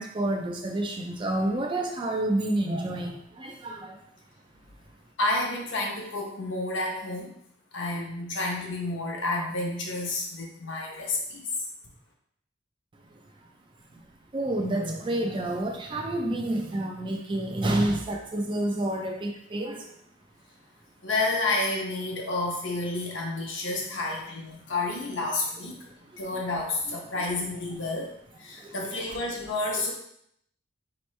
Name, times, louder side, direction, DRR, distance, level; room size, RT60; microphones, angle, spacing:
voice 1, 0.0-4.0 14.3-19.9 28.6-28.9, right 1 dB, 25° right, 3 dB, 0.4 m, -29 dB
voice 2, 5.2-7.3 7.7-11.7 21.0-28.1 28.4-29.9, left 2 dB, 65° left, -1 dB, 0.9 m, -30 dB
4.2 x 3.0 x 3.2 m, 0.73 s
head